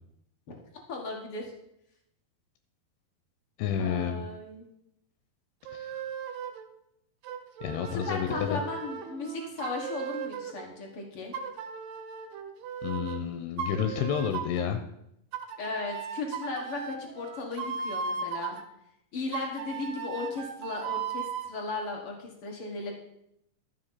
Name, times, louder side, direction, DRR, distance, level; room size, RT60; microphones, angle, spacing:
voice 1, 0.9-1.5 3.8-4.7 7.9-11.3 15.6-18.6 19.1-22.9, left 3 dB, 50° left, 1 dB, 1.7 m, -36 dB
voice 2, 3.6-4.2 5.7-6.0 7.6-8.6 12.8-14.8, left 8 dB, 80° left, 7 dB, 2.9 m, -30 dB
sound 1, 5.7-6.7 7.2-10.7 11.3-13.2 13.6-14.7 15.3-18.6 19.3-21.5, right 6 dB, 75° right, 2.2 m, -37 dB
12.0 x 7.5 x 5.7 m, 0.77 s
omnidirectional pair, 4.8 m